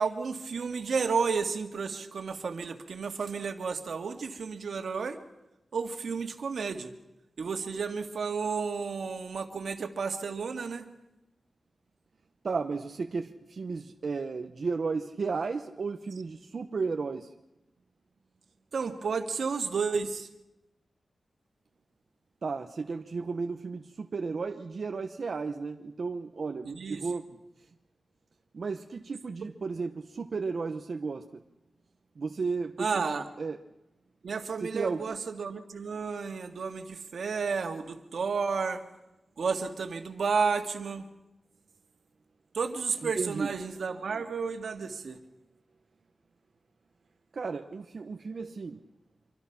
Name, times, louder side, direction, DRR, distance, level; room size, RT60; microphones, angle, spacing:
voice 1, 0.0-5.2 5.7-6.9 7.4-10.9 18.7-20.3 26.6-27.1 29.4-29.5 32.8-33.3 34.2-38.8 39.4-41.1 42.5-45.2, right 5 dB, 80° right, 6 dB, 2.0 m, -32 dB
voice 2, 12.4-17.3 22.4-27.2 28.5-31.4 32.2-33.0 33.4-33.6 34.6-35.1 43.0-43.5 47.3-48.8, right 4 dB, 55° right, 6 dB, 0.9 m, -34 dB
26.5 x 24.5 x 6.0 m, 0.95 s
wide cardioid pair, 155°, 0 cm